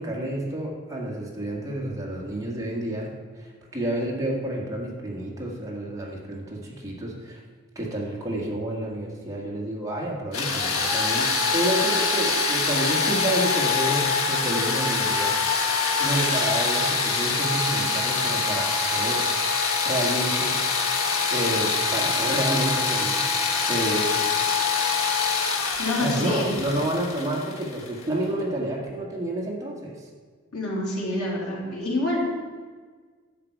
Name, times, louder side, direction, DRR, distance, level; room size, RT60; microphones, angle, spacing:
voice 1, 0.0-7.4 7.7-15.4 16.0-19.3 19.8-20.6 21.3-24.1 26.0-30.0, right 1 dB, 15° right, -3 dB, 1.7 m, -29 dB
sound 1, 10.3-28.0, left 4 dB, 70° left, 1.4 m, -24 dB
voice 2, 25.8-26.5 30.5-32.3, left 1 dB, 90° left, -6 dB, 3.7 m, -27 dB
11.0 x 7.8 x 4.7 m, 1.5 s
head